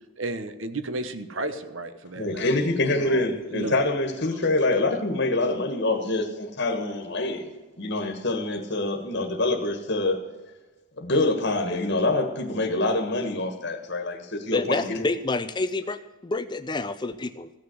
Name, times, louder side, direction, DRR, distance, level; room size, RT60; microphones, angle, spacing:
voice 1, 0.2-2.6 3.0-3.8 4.3-4.5, right 2 dB, 65° right, 11 dB, 1.1 m, -33 dB
voice 2, 2.2-10.2 11.0-15.0, left 2 dB, 55° left, 3 dB, 1.5 m, -25 dB
voice 3, 14.5-17.5, left 3 dB, 20° left, 12 dB, 0.4 m, -28 dB
15.5 x 6.6 x 7.8 m, 1.2 s
head